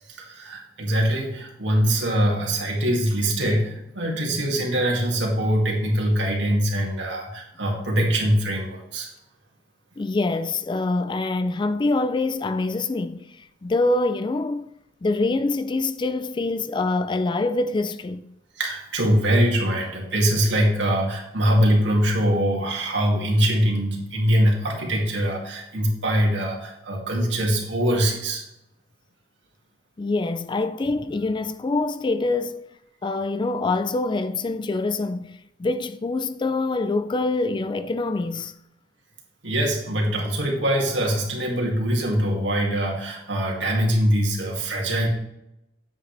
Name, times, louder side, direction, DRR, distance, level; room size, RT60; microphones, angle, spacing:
voice 1, 0.1-9.1 18.6-28.4 39.4-45.1, equal, 70° right, 2.4 m, -23 dB
voice 2, 10.0-14.7 15.0-18.3 30.0-32.6 33.0-38.5, left 2 dB, 25° left, 0.3 m, -25 dB
9.6 x 7.9 x 3.4 m
head